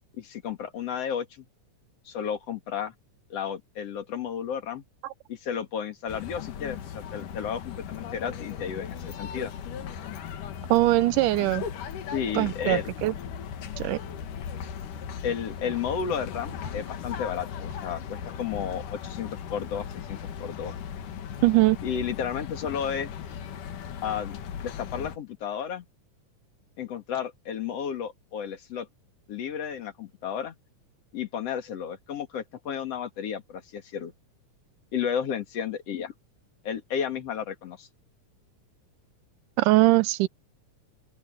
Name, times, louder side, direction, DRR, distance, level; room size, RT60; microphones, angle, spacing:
voice 1, 0.1-1.4 2.1-2.9 3.3-4.8 5.3-9.5 12.1-12.9 15.2-20.8 21.8-23.1 24.0-24.4 24.6-25.9 26.8-28.9 29.3-30.6 31.1-34.1 34.9-36.1 36.6-37.9, left 8 dB, 50° left, 3.0 m, -33 dB
sound 1, 6.1-25.2, left 8 dB, 75° left, 3.1 m, -37 dB
voice 2, 10.7-11.7 12.3-13.2 13.8-14.0 21.4-21.8 39.6-40.3, right 18 dB, 80° right, 2.3 m, -21 dB
open air
omnidirectional pair, 3.7 m